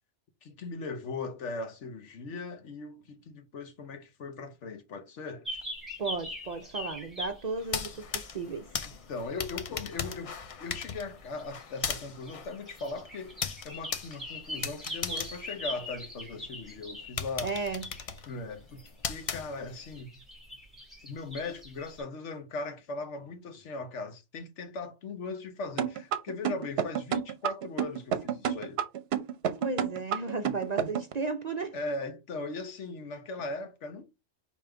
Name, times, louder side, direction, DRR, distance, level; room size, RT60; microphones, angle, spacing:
voice 1, 0.4-5.6 8.8-10.3 10.6-17.6 18.3-18.8 19.1-20.2 21.0-28.8 30.4-30.5 30.8-30.9 31.7-34.0, left 3 dB, 80° left, 1.2 m, -39 dB
sound 1, 5.5-8.2 8.9-9.3 10.8-10.9 11.2-17.2 17.6-19.3 19.6-22.0, left 1 dB, ahead, 2.3 m, -42 dB
voice 2, 6.0-8.7 17.4-17.8 29.6-31.8, right 4 dB, 50° right, 0.5 m, -34 dB
sound 2, 7.6-16.4 16.8-16.9 17.2-20.0, left 6 dB, 55° left, 0.3 m, -38 dB
sound 3, 25.8-31.1, right 9 dB, 65° right, 0.8 m, -29 dB
5.1 x 3.1 x 3.3 m
omnidirectional pair, 1.2 m